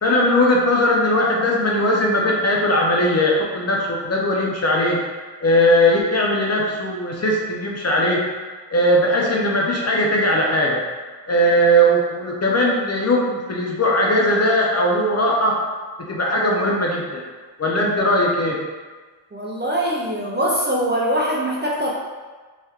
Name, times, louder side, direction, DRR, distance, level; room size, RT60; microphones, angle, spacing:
voice 1, 0.0-5.0 5.4-8.2 8.7-10.8 11.3-15.5 16.1-17.2 17.6-18.6, equal, 35° left, -2 dB, 0.5 m, -19 dB
voice 2, 19.3-21.9, equal, 25° right, -4 dB, 0.4 m, -22 dB
3.1 x 2.8 x 2.3 m, 1.4 s
wide cardioid pair, 105°, 43 cm